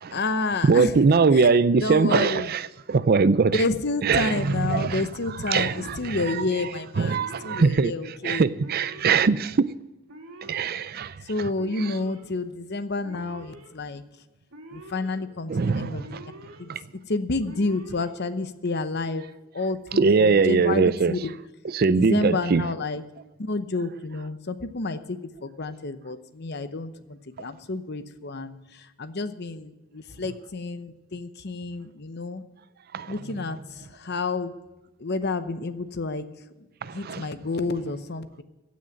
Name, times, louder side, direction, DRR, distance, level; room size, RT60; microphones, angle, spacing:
voice 1, 0.1-0.9 1.3-1.4 1.8-2.5 3.5-7.2 7.4-8.5 11.2-14.0 14.7-16.2 16.6-16.7 17.1-19.3 19.5-21.3 21.9-23.0 23.4-32.4 33.1-34.5 35.0-36.2 36.9-38.4, left 3 dB, 50° left, 0.8 m, -30 dB
voice 2, 0.6-3.6 4.0-5.1 5.4-6.7 7.0-9.7 10.4-11.1 11.8-11.9 15.5-16.2 16.7-16.8 19.9-21.1 21.6-22.7 32.9-33.1 36.8-37.3, right 4 dB, 45° right, 0.4 m, -22 dB
Alarm, 4.2-4.8 5.7-6.3 7.1-7.8 8.6-9.3 10.1-10.7 11.5-12.2 13.0-13.7 14.5-15.2 16.0-16.6 17.4-18.1, right 1 dB, 85° right, 2.9 m, -45 dB
16.0 x 6.4 x 8.9 m
head